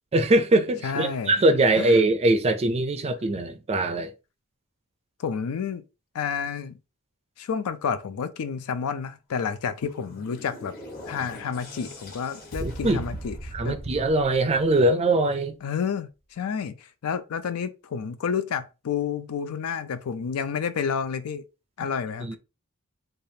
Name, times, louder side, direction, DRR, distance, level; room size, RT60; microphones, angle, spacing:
voice 1, 0.1-4.1 12.6-13.0 13.5-15.6 22.2-22.4, right 2 dB, 30° right, 0.4 m, -22 dB
voice 2, 0.8-1.3 1.8-2.0 5.2-5.8 6.1-6.8 7.4-10.7 11.1-13.8 15.6-21.4 21.8-22.4, left 6 dB, 75° left, 0.4 m, -30 dB
sound 1, 9.7-15.0, equal, 45° left, 1.1 m, -40 dB
3.3 x 2.4 x 2.7 m
head